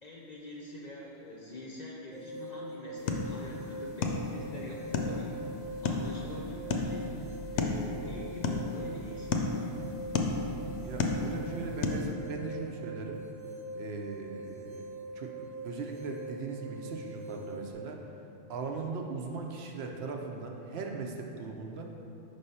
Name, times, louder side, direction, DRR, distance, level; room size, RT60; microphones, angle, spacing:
voice 1, 0.0-5.3 5.8-9.7, left 1 dB, 50° left, -3 dB, 0.5 m, -45 dB
sound 1, 2.1-17.7, right 2 dB, 90° right, 1.1 m, -43 dB
sound 2, 3.0-12.1, left 3 dB, 85° left, 0.9 m, -34 dB
voice 2, 10.8-13.2 13.7-14.9 15.1-18.0 18.5-21.9, right 4 dB, 70° right, 2 dB, 0.8 m, -39 dB
5.4 x 3.4 x 5.4 m, 2.9 s
omnidirectional pair, 1.2 m